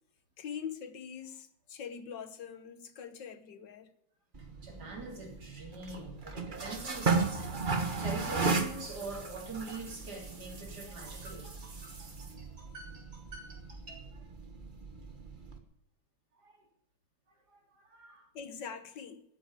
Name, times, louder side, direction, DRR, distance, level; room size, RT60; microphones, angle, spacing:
voice 1, 0.4-3.9 18.3-19.2, left 7 dB, 75° left, 1.8 m, -43 dB
sound 1, 4.3-15.6, right 4 dB, 30° right, 1.5 m, -36 dB
voice 2, 4.6-7.6 8.0-14.2 16.4-16.6 17.5-18.3, right 3 dB, 60° right, 3.9 m, -45 dB
13.5 x 8.8 x 9.1 m
omnidirectional pair, 1.9 m